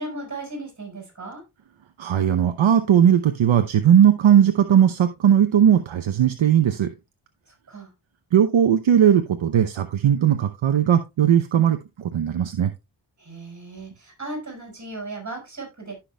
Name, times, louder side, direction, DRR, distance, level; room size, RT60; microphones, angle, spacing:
voice 1, 0.0-1.4 7.5-7.9 13.2-16.0, right 2 dB, 35° right, 1 dB, 5.3 m, -36 dB
voice 2, 2.0-6.9 8.3-12.7, right 9 dB, 70° right, 8 dB, 0.8 m, -18 dB
15.5 x 5.9 x 2.3 m, 0.24 s
wide cardioid pair, 90°, 49 cm